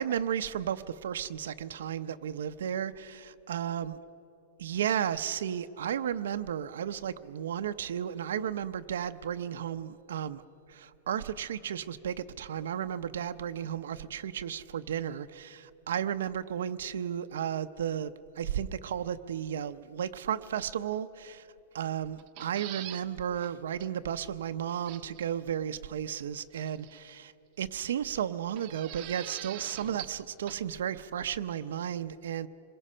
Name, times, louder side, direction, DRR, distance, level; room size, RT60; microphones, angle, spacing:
voice 1, 0.0-3.9 4.6-10.4 10.7-21.5 21.7-27.3 27.6-32.5, right 9 dB, 80° right, 9 dB, 0.7 m, -34 dB
sound 1, 22.2-23.1 23.4-23.5 23.8-23.9 24.9-25.3 26.5-27.1 28.6-30.2 30.5-30.6, right 14 dB, 30° right, 0.8 m, -43 dB
26.5 x 22.0 x 5.6 m, 2.9 s
supercardioid pair, 180°, 0 cm